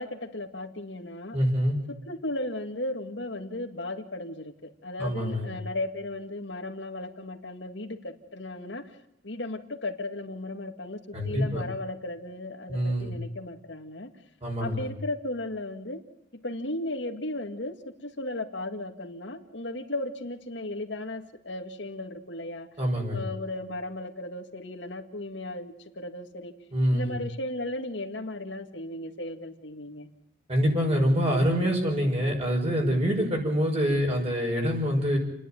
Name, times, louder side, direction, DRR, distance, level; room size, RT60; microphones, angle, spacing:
voice 1, 0.0-1.4 1.9-8.9 9.2-14.1 14.6-16.0 16.4-22.7 23.1-26.5 26.9-30.1, left 2 dB, 65° left, 5 dB, 2.0 m, -35 dB
voice 2, 1.3-1.8 5.0-5.5 11.1-11.6 12.7-13.1 14.4-14.9 22.8-23.3 26.7-27.1 30.5-35.2, equal, 35° right, -1 dB, 6.2 m, -25 dB
30.0 x 10.5 x 9.2 m, 0.81 s
head